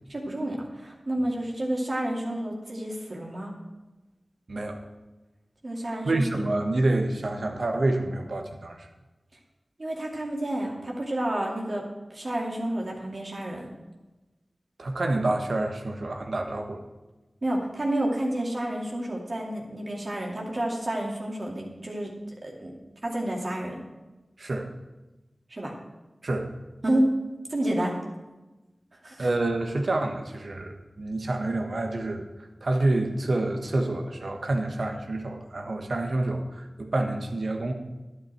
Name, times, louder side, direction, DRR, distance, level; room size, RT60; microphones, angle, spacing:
voice 1, 0.1-3.5 5.6-6.2 9.8-11.8 12.1-13.7 17.4-22.1 22.4-22.7 23.0-23.8 25.5-25.7 26.8-27.1 27.5-28.0 29.0-29.3, right 1 dB, 55° right, -2 dB, 2.5 m, -29 dB
voice 2, 4.5-4.8 6.0-8.9 14.8-16.8 24.4-24.7 26.2-26.5 29.2-32.3 32.6-37.7, right 2 dB, 75° right, 4 dB, 1.4 m, -28 dB
11.5 x 8.3 x 4.6 m, 1.1 s
cardioid pair, 45°, 0 cm